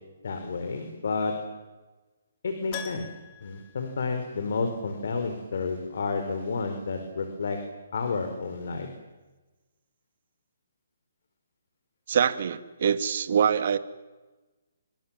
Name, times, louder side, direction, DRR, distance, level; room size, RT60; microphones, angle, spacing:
voice 1, 0.2-1.3 2.4-3.1 3.4-7.6 7.9-8.9, left 4 dB, 65° left, 6 dB, 4.7 m, -30 dB
Keyboard (musical), 2.7-4.8 5.0-5.1 7.8-7.9 8.2-8.3, left 9 dB, 30° left, 3.1 m, -43 dB
voice 2, 12.1-13.8, right 8 dB, 55° right, 11 dB, 2.1 m, -24 dB
26.5 x 24.5 x 7.6 m, 1.2 s
hypercardioid pair, 155°, 0 cm